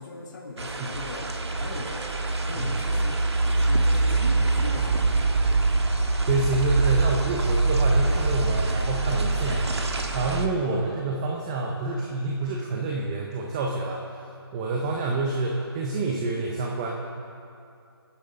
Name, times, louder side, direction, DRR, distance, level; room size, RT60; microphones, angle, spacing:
voice 1, 0.0-3.2 3.5-5.2, left 3 dB, 45° left, -2 dB, 2.1 m, -39 dB
sound 1, 0.6-10.5, right 3 dB, 85° right, 1.5 m, -24 dB
voice 2, 6.2-9.7 10.1-14.2 14.5-16.9, right 3 dB, 15° right, -1 dB, 0.7 m, -27 dB
27.5 x 9.8 x 3.8 m, 2.5 s
figure-of-eight pair, 165°, 14 cm